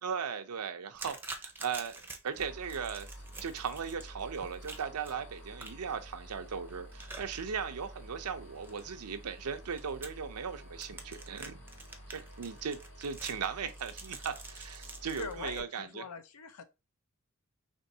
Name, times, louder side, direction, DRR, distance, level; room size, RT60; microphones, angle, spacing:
voice 1, 0.0-3.1 3.4-11.6 12.1-16.0, right 6 dB, 90° right, 0.6 m, -38 dB
sound 1, 0.9-15.6, right 3 dB, 10° right, 0.5 m, -49 dB
sound 2, 2.3-15.6, equal, 70° left, 1.6 m, -50 dB
voice 2, 15.0-16.6, left 5 dB, 85° left, 0.6 m, -43 dB
4.4 x 3.0 x 2.7 m
head